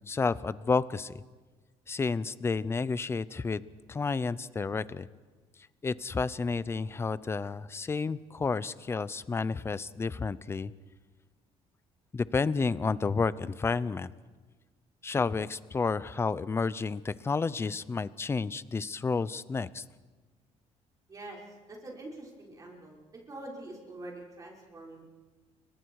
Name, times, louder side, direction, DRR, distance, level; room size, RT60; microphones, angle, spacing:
voice 1, 0.1-1.2 1.9-3.6 3.9-5.1 5.8-10.7 12.1-14.1 15.0-19.8, left 4 dB, 20° left, 17 dB, 0.7 m, -31 dB
voice 2, 21.1-23.0 23.3-25.0, right 2 dB, 30° right, -1 dB, 5.5 m, -45 dB
29.5 x 24.5 x 4.8 m, 1.3 s
cardioid pair, 140°, 12 cm